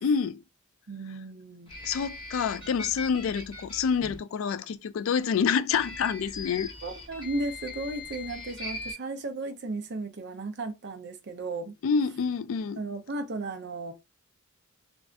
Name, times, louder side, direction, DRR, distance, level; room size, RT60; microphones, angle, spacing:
voice 1, 0.0-0.4 1.8-6.7 11.8-12.8, left 6 dB, 65° left, 0.3 m, -27 dB
voice 2, 0.9-1.7 6.8-11.7 12.8-13.9, right 2 dB, 55° right, 0.6 m, -35 dB
sound 1, 1.7-4.2 5.7-8.9, left 2 dB, 25° left, 1.6 m, -41 dB
3.3 x 2.5 x 2.4 m
head